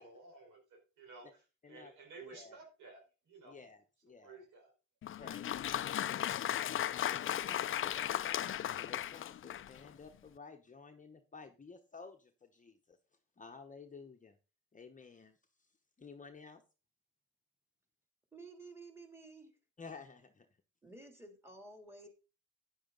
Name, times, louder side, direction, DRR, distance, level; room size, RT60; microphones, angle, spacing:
voice 1, 0.0-3.6 4.2-4.7, right 3 dB, 85° right, 2 dB, 4.4 m, -54 dB
voice 2, 2.2-2.6 3.4-4.4 5.2-8.5 8.8-13.0 13.4-14.4 14.7-15.7 16.0-16.6 19.8-20.5, left 4 dB, 25° left, 5 dB, 1.0 m, -54 dB
Applause, 5.0-9.9, left 11 dB, 45° left, 0.5 m, -36 dB
voice 3, 18.3-19.5 20.8-22.1, right 3 dB, 10° right, 5 dB, 3.0 m, -53 dB
9.7 x 8.6 x 3.9 m, 0.32 s
cardioid pair, 90°, 30 cm